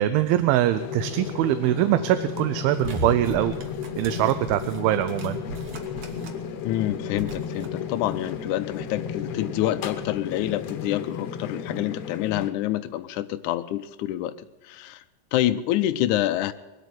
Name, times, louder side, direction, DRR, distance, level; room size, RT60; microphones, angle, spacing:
voice 1, 0.0-3.5 4.0-5.4, right 13 dB, 85° right, 12 dB, 2.5 m, -23 dB
sound 1, 0.7-12.5, left 7 dB, 65° left, 1.7 m, -34 dB
sound 2, 2.8-6.5 6.8-7.7, right 1 dB, 55° right, 1.7 m, -37 dB
voice 2, 6.6-14.3 14.6-15.0 15.3-16.5, left 13 dB, 90° left, 10 dB, 1.7 m, -27 dB
22.0 x 8.3 x 7.7 m, 1.2 s
omnidirectional pair, 4.2 m